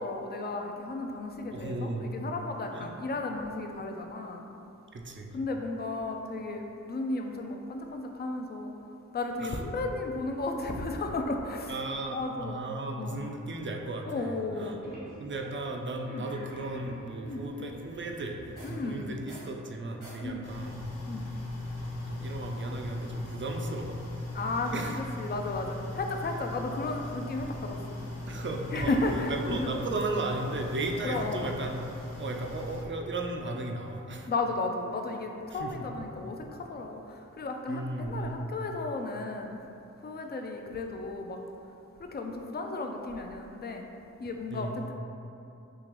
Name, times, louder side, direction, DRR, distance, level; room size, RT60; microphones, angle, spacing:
voice 1, 0.0-4.4 5.3-8.7 9.1-11.8 12.1-12.6 13.0-13.2 14.1-14.8 16.1-16.3 17.3-17.4 18.6-19.1 20.2-20.5 21.1-21.2 24.3-28.0 28.7-29.7 31.0-31.5 34.3-39.6 40.0-41.4 42.0-43.9 44.2-44.9, left 2 dB, 35° left, 3 dB, 0.4 m, -34 dB
voice 2, 1.5-2.1 2.7-2.9 4.9-5.3 9.4-9.6 11.7-14.8 15.2-18.4 18.7-20.8 21.8-24.0 24.7-25.0 28.3-29.0 29.3-31.8 32.2-34.3 35.5-35.7 37.7-38.4 44.5-44.8, right 2 dB, 40° right, 2 dB, 0.5 m, -35 dB
sound 1, 14.8-18.9 19.2-20.2, equal, 80° right, 1.4 m, -48 dB
sound 2, 20.4-32.8, left 2 dB, 55° left, 0.8 m, -38 dB
3.7 x 2.8 x 3.0 m, 2.7 s
cardioid pair, 45°, 31 cm